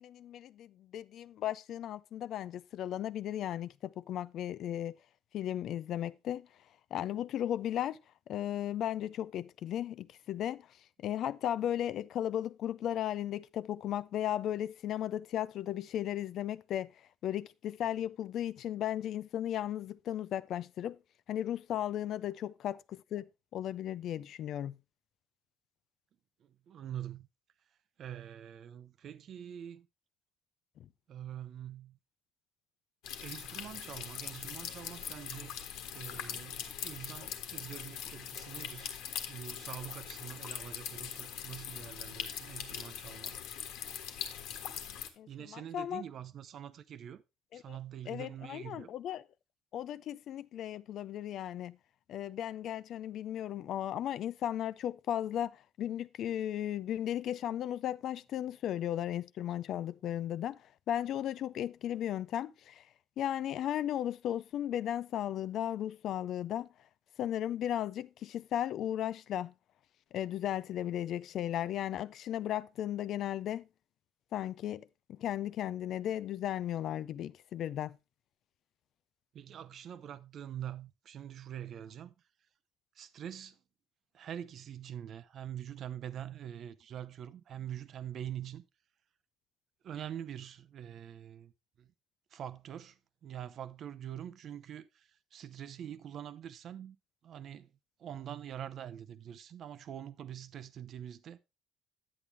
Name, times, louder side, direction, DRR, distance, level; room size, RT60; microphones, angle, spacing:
voice 1, 0.0-5.0 5.3-6.5 6.9-8.0 8.3-10.7 11.0-16.9 17.2-21.0 21.3-24.8 45.2-46.0 47.5-47.8 48.1-49.2 49.7-51.8 52.1-60.6 60.9-62.8 63.2-66.7 67.2-69.5 70.1-73.7 74.3-77.9, left 11 dB, 50° left, 0.4 m, -35 dB
voice 2, 26.4-27.3 28.0-29.9 31.1-32.0 33.2-35.6 35.9-38.9 39.3-43.4 45.3-47.2 47.5-48.9 79.3-82.1 83.0-83.6 84.1-88.6 89.8-91.5 91.8-91.9 92.3-93.0 93.2-97.0 97.2-97.7 98.0-101.4, right 10 dB, 45° right, 0.7 m, -44 dB
sound 1, 33.0-45.1, left 9 dB, 75° left, 1.5 m, -42 dB
10.0 x 8.6 x 3.3 m
cardioid pair, 165°, 0 cm